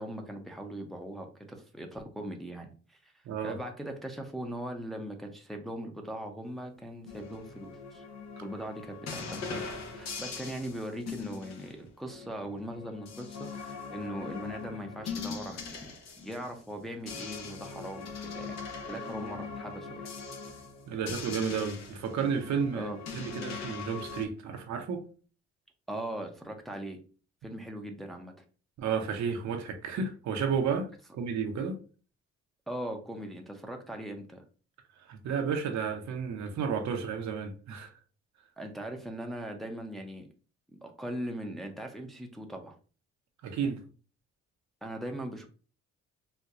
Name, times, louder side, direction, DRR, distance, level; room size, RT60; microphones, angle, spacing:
voice 1, 0.0-3.1 3.4-8.0 8.4-18.6 18.9-20.1 22.7-23.0 25.9-27.0 27.4-28.3 32.7-34.4 38.6-40.3 40.7-42.7 44.8-45.5, right 1 dB, ahead, 0.6 m, -40 dB
voice 2, 3.2-3.6 20.9-25.0 28.8-31.8 35.0-37.9 43.4-43.8, right 6 dB, 70° right, 0.8 m, -32 dB
sound 1, 7.1-16.6 16.9-24.3, left 5 dB, 60° left, 0.8 m, -41 dB
4.4 x 2.2 x 2.5 m
cardioid pair, 90°, 30 cm